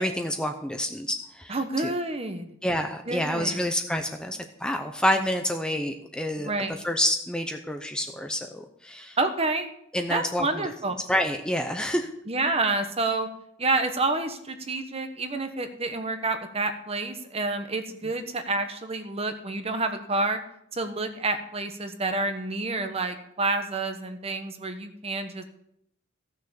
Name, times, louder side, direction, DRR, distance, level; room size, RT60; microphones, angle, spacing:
voice 1, 0.0-1.9 2.6-6.5 6.8-9.2 9.9-10.6 11.1-12.1, equal, 5° left, 4 dB, 0.7 m, -28 dB
voice 2, 1.5-2.5 3.1-3.6 6.4-6.8 9.2-9.7 10.1-10.9 12.3-13.3 13.6-20.4 20.7-25.4, right 3 dB, 30° right, 7 dB, 1.2 m, -28 dB
15.0 x 6.6 x 7.0 m, 0.76 s
head